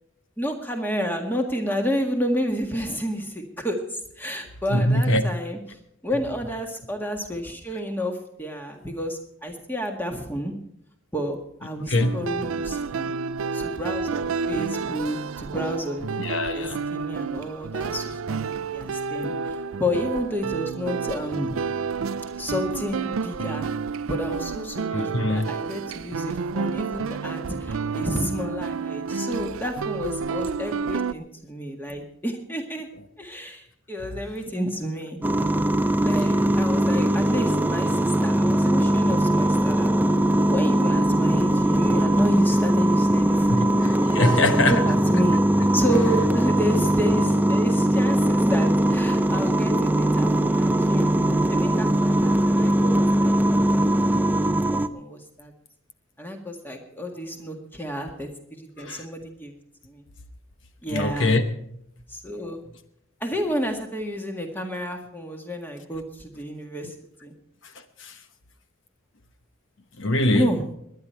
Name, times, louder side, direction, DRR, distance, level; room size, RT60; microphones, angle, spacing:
voice 1, 0.4-5.6 6.0-10.5 11.1-13.1 13.5-16.1 16.5-21.6 22.4-23.7 24.1-32.9 33.2-35.2 36.0-39.9 40.5-43.7 44.2-45.4 45.7-54.1 54.7-55.5 56.2-59.5 59.8-60.0 60.8-61.4 62.1-62.6 63.2-66.9 67.2-67.3 70.3-70.6, equal, 10° left, 3 dB, 1.8 m, -30 dB
voice 2, 4.7-5.2 11.9-12.1 16.2-16.8 18.8-18.9 24.9-25.5 40.1-40.2 43.5-44.8 58.8-59.1 60.9-61.4 68.0-68.2 70.0-70.5, left 1 dB, 65° left, 8 dB, 1.0 m, -23 dB
sound 1, 12.0-31.1, right 5 dB, 85° right, 0.5 m, -30 dB
sound 2, 35.2-54.9, right 1 dB, 10° right, 0.5 m, -21 dB
21.0 x 10.5 x 4.5 m, 0.75 s
head